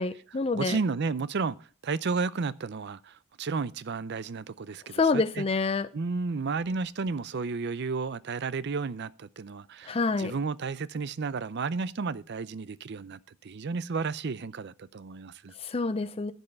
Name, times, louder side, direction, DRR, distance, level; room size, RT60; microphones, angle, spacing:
voice 1, 0.0-0.8 4.9-5.9 9.9-10.3 15.6-16.3, left 4 dB, 25° left, 0.5 m, -27 dB
voice 2, 0.5-1.6 1.8-5.5 5.9-15.5, right 4 dB, 50° right, 0.5 m, -32 dB
14.5 x 5.5 x 5.6 m
head